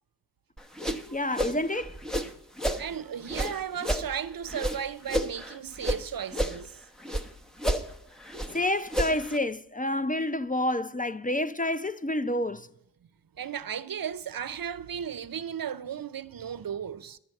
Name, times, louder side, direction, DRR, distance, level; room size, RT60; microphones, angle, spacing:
sound 1, 0.6-2.9 3.3-6.0 6.3-7.3 7.6-9.4, right 1 dB, ahead, 1.0 m, -31 dB
voice 1, 1.1-2.0 8.5-12.7, left 1 dB, 20° left, 0.5 m, -29 dB
voice 2, 2.8-6.8 13.4-17.2, right 8 dB, 65° right, 0.6 m, -35 dB
11.0 x 6.5 x 8.8 m
cardioid pair, 50°, 38 cm